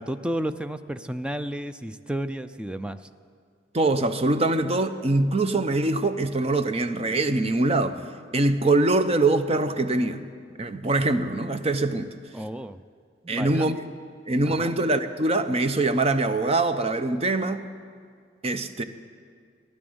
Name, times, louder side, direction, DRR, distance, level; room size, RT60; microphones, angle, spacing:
voice 1, 0.0-3.0 12.3-12.8 13.2-13.7 14.5-14.7, right 1 dB, 5° right, 0.4 m, -32 dB
voice 2, 3.7-8.0 8.3-10.2 10.6-12.1 13.3-13.9 14.3-17.6 18.4-18.8, right 2 dB, 35° right, 0.7 m, -23 dB
16.5 x 11.0 x 7.9 m
head